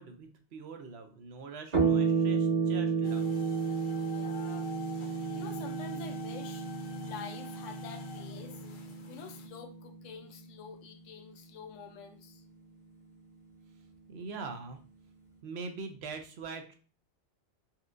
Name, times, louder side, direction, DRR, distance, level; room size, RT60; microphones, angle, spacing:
voice 1, 0.0-3.3 5.2-5.3 14.1-14.8 15.4-16.7, right 4 dB, 65° right, 5 dB, 0.8 m, -43 dB
sound 1, 1.7-10.6, right 5 dB, 35° right, 1.0 m, -32 dB
sound 2, 3.0-9.5, left 6 dB, 60° left, 0.6 m, -47 dB
voice 2, 4.1-4.7 5.1-6.7 7.0-8.6 9.1-12.4, left 6 dB, 75° left, 5 dB, 0.9 m, -48 dB
4.2 x 2.4 x 2.5 m, 0.38 s
omnidirectional pair, 1.3 m